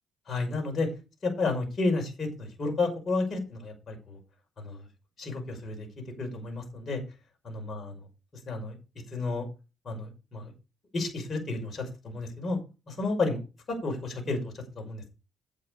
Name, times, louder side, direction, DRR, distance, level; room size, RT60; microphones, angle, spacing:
voice 1, 0.3-0.9 1.2-4.2 4.6-4.8 5.2-5.9 6.2-7.0 7.4-8.0 8.5-8.8 9.1-9.4 9.8-10.5 10.9-12.6 12.9-13.4 13.7-15.1, left 3 dB, 45° left, 2 dB, 5.8 m, -31 dB
9.2 x 8.5 x 5.0 m, 0.30 s
cardioid pair, 90°, 0 cm